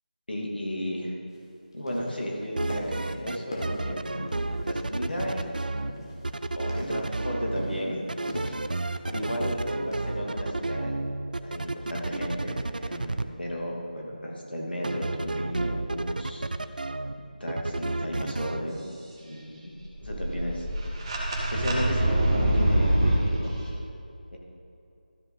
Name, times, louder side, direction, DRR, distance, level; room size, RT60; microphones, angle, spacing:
voice 1, 0.3-1.1 1.7-5.5 6.6-8.0 8.3-8.6 9.1-10.9 11.4-16.4 17.2-18.8 19.2-19.7 20.0-20.6 21.5-23.5 24.3-24.4, equal, 85° left, -2 dB, 2.5 m, -34 dB
sound 1, 1.3-1.4 1.7-2.3 2.7-3.1 3.5-4.7 5.1-5.5 5.9-6.2 6.6-7.0 7.5-7.9 8.3-8.7 9.1-9.4 9.9-10.1, left 1 dB, 30° left, 1.7 m, -41 dB
sound 2, 2.4-3.4 3.6-5.9 6.2-7.8 8.1-13.2 14.8-17.1 17.5-18.6, right 2 dB, 60° right, 0.5 m, -31 dB
sound 3, 19.8-23.3, right 1 dB, 30° right, 1.5 m, -24 dB
13.0 x 7.6 x 3.9 m, 2.7 s
figure-of-eight pair, 165°, 5 cm